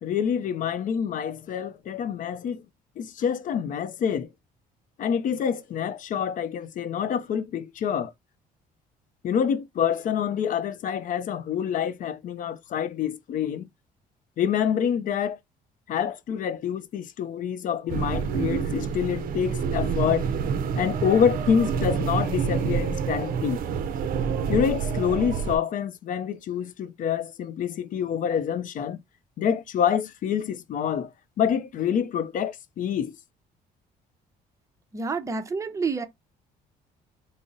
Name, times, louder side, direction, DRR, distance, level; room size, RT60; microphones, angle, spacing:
voice 1, 0.0-2.6 3.0-4.3 5.0-8.1 9.2-13.7 14.4-15.4 15.9-20.3 20.8-23.6 24.5-29.0 29.4-31.1 31.4-33.1, left 8 dB, 50° left, 0.5 m, -27 dB
sound 1, 17.9-25.6, right 6 dB, 60° right, 0.5 m, -27 dB
voice 2, 34.9-36.1, right 4 dB, 20° right, 0.7 m, -28 dB
3.8 x 2.0 x 3.7 m
cardioid pair, 110°, 17 cm